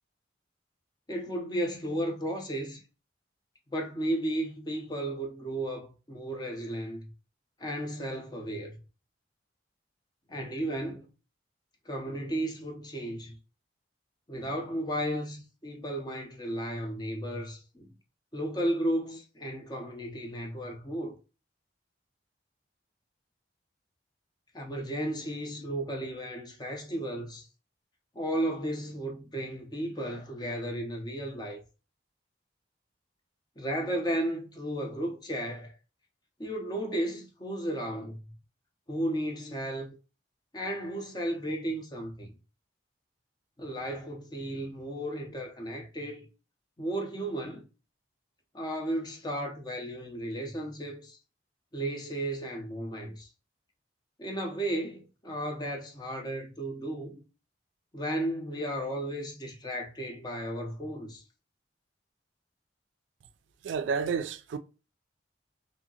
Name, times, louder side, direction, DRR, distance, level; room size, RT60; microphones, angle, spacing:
voice 1, 1.1-2.8 3.7-7.1 7.6-8.8 10.3-11.1 11.9-13.4 14.3-17.9 18.3-21.2 24.5-27.5 28.1-31.6 33.6-35.7 36.4-38.2 38.9-40.0 40.5-42.3 43.6-46.3 46.8-47.7 48.5-51.2 51.7-53.3 54.2-57.2 57.9-61.2, right 1 dB, 20° left, 0.6 m, -34 dB
voice 2, 63.6-64.6, right 6 dB, 75° right, 0.3 m, -30 dB
2.8 x 2.6 x 2.7 m
head